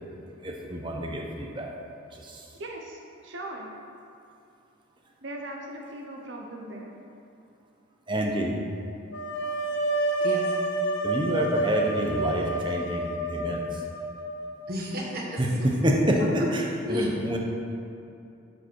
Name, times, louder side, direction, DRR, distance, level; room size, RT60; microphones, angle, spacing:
voice 1, 0.4-1.7 2.1-2.4 8.1-8.6 11.0-13.6 15.4-15.5 15.8-16.2 16.9-17.4, equal, 25° right, 0 dB, 0.9 m, -28 dB
voice 2, 2.5-3.7 5.2-7.0, right 1 dB, 65° right, 0 dB, 0.9 m, -39 dB
sound 1, 9.1-15.0, right 2 dB, 60° left, 0.9 m, -29 dB
voice 3, 14.7-15.7 16.1-17.1, left 1 dB, 45° right, -2 dB, 1.5 m, -32 dB
11.0 x 5.1 x 4.6 m, 2.6 s
head